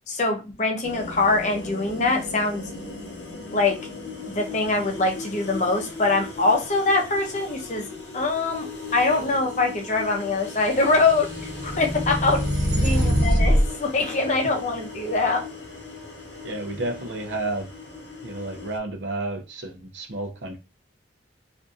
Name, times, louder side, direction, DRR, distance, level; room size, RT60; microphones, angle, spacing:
voice 1, 0.1-2.6 3.5-3.8 4.3-7.9 8.1-8.7 8.9-12.4 12.7-15.4, left 3 dB, 40° left, 0.6 m, -23 dB
sound 1, 0.8-18.8, left 3 dB, 80° left, 0.7 m, -37 dB
sound 2, 10.7-13.7, equal, 20° right, 0.9 m, -23 dB
voice 2, 12.7-13.1 16.4-17.7 18.2-20.6, right 2 dB, 80° right, 0.7 m, -31 dB
2.6 x 2.5 x 2.3 m
head